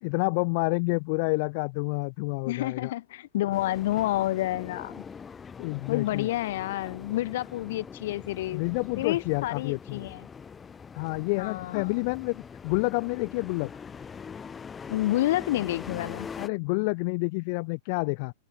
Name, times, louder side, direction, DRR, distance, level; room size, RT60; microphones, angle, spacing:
voice 1, 0.0-2.9 5.6-6.3 8.5-10.0 10.9-13.7 16.4-18.3, left 31 dB, 45° left, 0.8 m, -29 dB
voice 2, 2.5-5.0 5.9-10.3 11.4-12.1 14.9-16.3, left 15 dB, 65° left, 6.1 m, -29 dB
sound 1, 3.5-16.5, left 6 dB, 15° left, 2.8 m, -43 dB
supercardioid pair, 155°, 0 cm